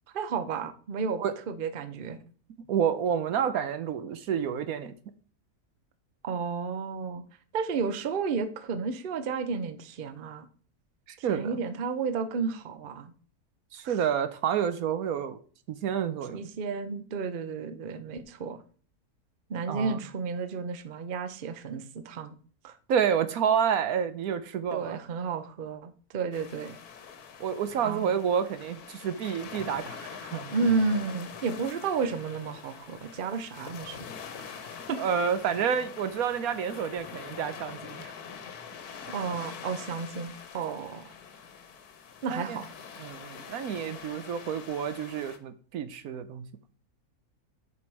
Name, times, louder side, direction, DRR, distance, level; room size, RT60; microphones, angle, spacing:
voice 1, 0.1-2.2 6.2-7.2 7.5-10.5 11.3-13.1 13.8-14.0 16.3-18.6 19.5-22.3 22.6-22.8 24.7-26.8 27.8-28.0 30.5-34.1 34.4-35.0 39.1-41.0 42.2-42.7, right 5 dB, 45° right, 0.8 m, -32 dB
voice 2, 2.7-4.9 11.1-11.6 13.7-15.4 15.7-16.5 19.7-20.0 22.9-25.0 27.4-30.5 35.0-38.1 42.3-42.6 43.0-46.5, right 8 dB, 70° right, 1.2 m, -29 dB
sound 1, 26.3-45.4, left 6 dB, 85° left, 1.5 m, -44 dB
7.4 x 6.2 x 4.7 m
omnidirectional pair, 1.6 m